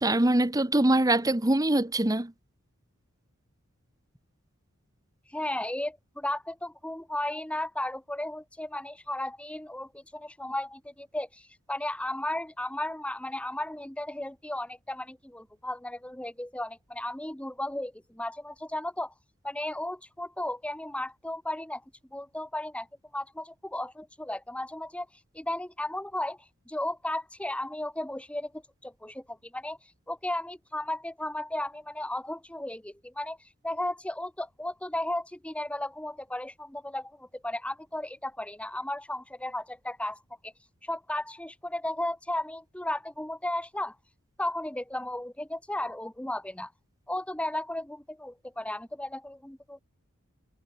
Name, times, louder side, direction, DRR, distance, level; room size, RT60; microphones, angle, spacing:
voice 1, 0.0-2.3, right 1 dB, 15° right, 1.1 m, -23 dB
voice 2, 5.3-19.1 19.4-21.8 22.1-22.9 23.1-40.5 40.8-44.0 44.4-46.7 47.1-49.8, left 1 dB, 5° left, 1.1 m, -35 dB
head